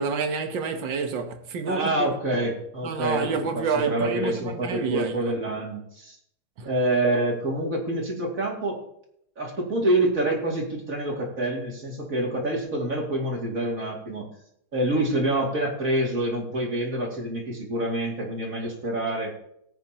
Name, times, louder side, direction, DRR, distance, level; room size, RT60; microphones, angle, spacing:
voice 1, 0.0-2.1 2.8-5.3 6.6-6.7, right 5 dB, 65° right, 1.8 m, -29 dB
voice 2, 1.7-6.2 6.6-8.8 9.4-14.3 14.7-19.4, right 1 dB, 40° right, 2.9 m, -27 dB
19.5 x 8.8 x 2.9 m
omnidirectional pair, 2.3 m